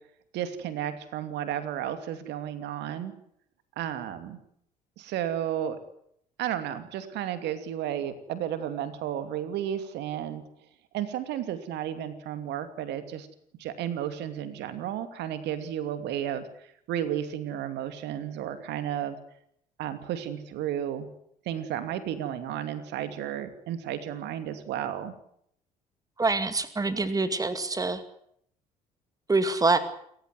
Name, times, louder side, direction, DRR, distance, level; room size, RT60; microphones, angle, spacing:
voice 1, 0.3-3.1 3.8-4.4 5.0-5.8 6.4-10.4 10.9-13.3 13.6-19.2 19.8-21.1 21.4-25.1, right 10 dB, 60° right, 10 dB, 2.7 m, -33 dB
voice 2, 26.2-28.0 29.3-29.8, right 3 dB, 20° right, 11 dB, 2.3 m, -25 dB
28.5 x 15.0 x 9.6 m, 0.70 s
figure-of-eight pair, 55°, 20 cm